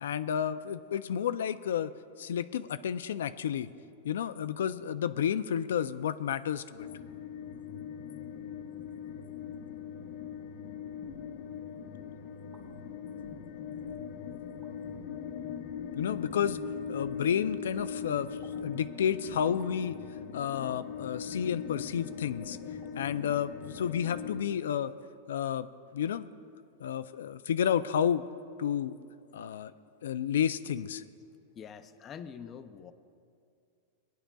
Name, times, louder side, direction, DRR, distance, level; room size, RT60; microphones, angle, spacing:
voice 1, 0.0-1.9 2.2-3.7 4.0-6.9 15.9-16.6 16.9-20.0 20.3-22.6 22.9-24.9 25.3-26.3 26.8-28.2 28.6-29.0 29.3-29.7 30.0-31.0, left 8 dB, 90° left, 13 dB, 0.4 m, -31 dB
sound 1, 6.8-24.4, left 7 dB, 50° left, 0.8 m, -40 dB
sound 2, 12.3-12.7 13.6-13.7 14.5-14.7 16.3-16.5 18.4-18.6 19.6-19.8 20.7-20.9 22.1-22.2 22.8-23.0 23.3-23.4, right 4 dB, 20° right, 1.4 m, -59 dB
voice 2, 31.6-32.9, left 7 dB, 20° left, 10 dB, 0.4 m, -45 dB
20.0 x 10.0 x 2.3 m, 2.4 s
supercardioid pair, 160°, 0 cm